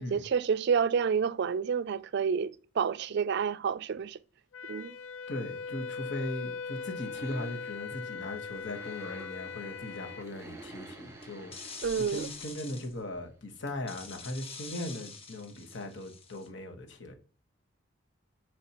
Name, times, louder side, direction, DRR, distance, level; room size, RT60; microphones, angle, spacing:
voice 1, 0.0-4.2 4.7-4.9 11.8-12.3, right 6 dB, 60° right, 0.4 m, -29 dB
Wind instrument woodwind instrument, 4.5-10.3, left 5 dB, 90° left, 0.4 m, -40 dB
voice 2, 5.3-17.1, left 1 dB, 65° left, 1.4 m, -39 dB
sound 1, 6.7-13.3 13.7-13.8 14.1-14.2 14.5-14.6 14.8-14.9, right 2 dB, 15° right, 1.5 m, -51 dB
sound 2, 8.6-8.9 11.2-12.9 13.9-16.5, left 5 dB, 30° left, 1.1 m, -46 dB
7.1 x 5.1 x 3.0 m
head